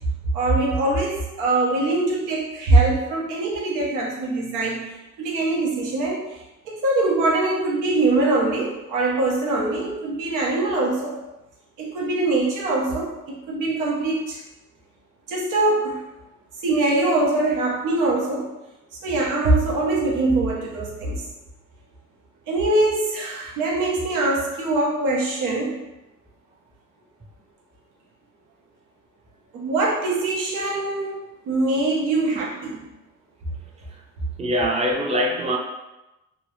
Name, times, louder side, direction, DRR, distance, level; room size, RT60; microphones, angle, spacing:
voice 1, 0.3-4.9 5.2-11.2 11.8-14.4 15.3-16.0 16.6-18.5 19.0-21.2 22.5-25.7 29.5-31.2 31.5-32.9, right 2 dB, 90° right, -3 dB, 0.8 m, -23 dB
voice 2, 34.4-35.6, equal, 20° right, -1 dB, 0.5 m, -22 dB
2.9 x 2.0 x 3.0 m, 0.97 s
cardioid pair, 90°, 30 cm